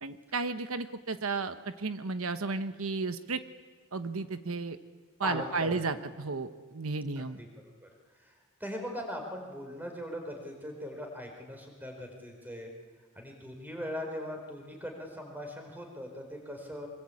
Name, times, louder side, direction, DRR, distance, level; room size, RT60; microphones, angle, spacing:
voice 1, 0.0-3.4 3.9-4.8 5.2-7.4, right 3 dB, 75° right, 10 dB, 1.1 m, -33 dB
voice 2, 5.2-5.9 7.2-7.5 7.8-7.9 8.2-8.3 8.6-12.7 13.1-16.9, equal, 10° right, 3 dB, 4.5 m, -40 dB
24.5 x 23.0 x 8.6 m, 1.5 s
head